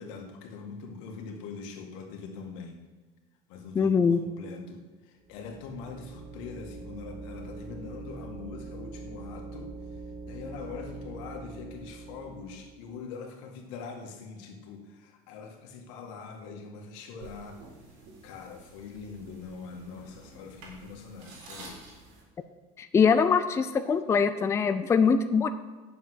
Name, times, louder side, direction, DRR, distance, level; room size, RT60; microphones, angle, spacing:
voice 1, 0.0-2.8 3.5-17.7 18.2-21.8, left 5 dB, 90° left, 3 dB, 1.9 m, -43 dB
voice 2, 3.8-4.2 22.8-25.5, left 6 dB, 20° left, 9 dB, 0.5 m, -23 dB
sound 1, 5.2-12.9, right 3 dB, 35° right, 3.2 m, -43 dB
sound 2, 17.2-22.2, right 2 dB, 85° right, 4.0 m, -50 dB
10.0 x 7.1 x 6.3 m, 1.3 s
cardioid pair, 150°, 15 cm